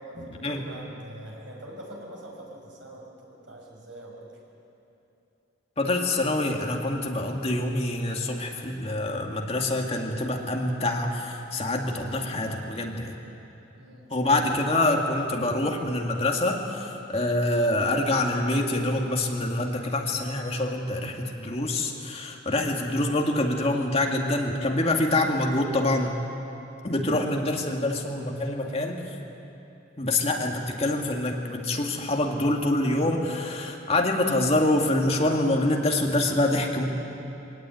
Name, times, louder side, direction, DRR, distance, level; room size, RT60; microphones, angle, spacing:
voice 1, 0.0-4.4 13.7-14.5, right 1 dB, 90° right, -1 dB, 6.0 m, -44 dB
voice 2, 5.8-13.1 14.1-26.2 26.8-29.0 30.0-36.9, left 2 dB, 30° left, 1 dB, 2.1 m, -26 dB
23.5 x 17.5 x 9.4 m, 2.9 s
head